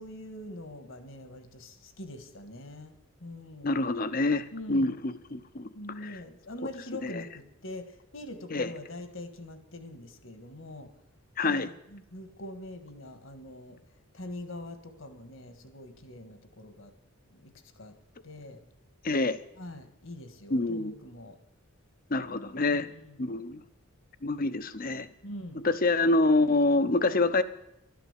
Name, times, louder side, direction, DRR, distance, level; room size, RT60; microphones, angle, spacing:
voice 1, 0.0-2.9 3.2-3.8 4.5-5.0 5.7-10.9 11.4-13.8 14.1-16.9 17.3-17.9 18.2-18.6 19.6-21.4 22.8-23.3 25.2-25.6, left 1 dB, 65° left, 9 dB, 1.7 m, -43 dB
voice 2, 3.6-5.7 6.0-6.2 7.0-7.1 8.5-8.7 11.4-11.7 19.0-19.4 20.5-20.9 22.1-22.9 23.2-23.6 24.2-25.1 25.6-27.4, left 2 dB, 40° left, 13 dB, 0.8 m, -26 dB
12.0 x 10.5 x 8.2 m, 0.83 s
head